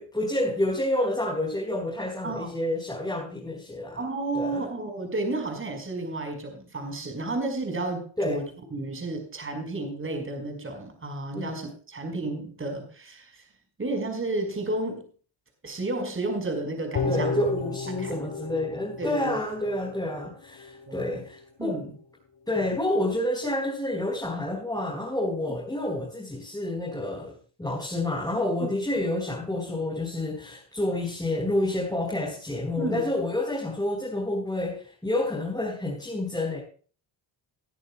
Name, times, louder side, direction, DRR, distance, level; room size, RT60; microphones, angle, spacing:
voice 1, 0.0-4.0 4.3-4.6 8.2-8.4 11.3-11.5 17.0-21.8 22.5-27.3 27.6-36.6, left 1 dB, 10° left, -2 dB, 4.8 m, -29 dB
voice 2, 2.2-2.6 4.0-13.4 13.8-15.1 15.6-17.4 18.0-18.3 19.0-19.4 20.9-21.0 21.6-21.9 25.5-25.6 28.6-28.7 32.8-33.1, right 2 dB, 25° right, 4 dB, 5.4 m, -32 dB
sound 1, 16.9-20.3 20.6-20.7, left 4 dB, 55° left, 7.2 m, -32 dB
20.5 x 11.0 x 2.4 m, 0.40 s
cardioid pair, 100°, 46 cm